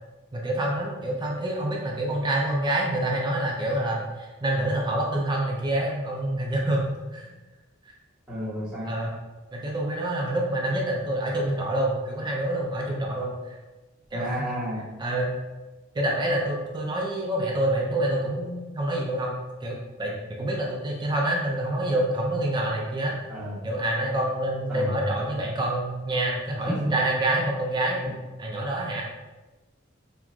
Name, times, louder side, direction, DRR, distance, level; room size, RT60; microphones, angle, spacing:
voice 1, 0.3-7.3 7.8-7.9 8.9-9.1 9.5-13.6 14.1-14.4 15.0-15.4 15.9-19.4 19.6-23.2 23.6-28.0 28.4-29.0, right 1 dB, 20° right, -2 dB, 0.5 m, -27 dB
voice 2, 8.3-8.9 14.1-14.9 23.3-23.6 24.7-24.9 26.7-26.9 28.0-28.1, equal, 5° right, -13 dB, 0.9 m, -31 dB
2.9 x 2.3 x 2.4 m, 1.2 s
head